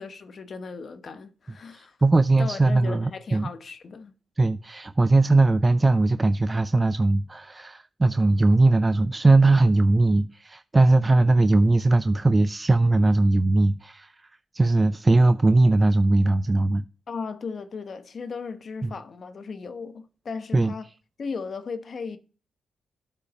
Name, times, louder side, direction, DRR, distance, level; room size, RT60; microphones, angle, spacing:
voice 1, 0.0-2.0 2.4-4.1 17.1-20.9 21.2-22.2, left 5 dB, 55° left, 0.9 m, -36 dB
voice 2, 1.7-3.5 4.4-14.3 14.5-16.8 18.8-18.9 20.5-20.7, right 2 dB, 25° right, 0.4 m, -20 dB
8.3 x 5.6 x 6.0 m
cardioid pair, 60°, 0 cm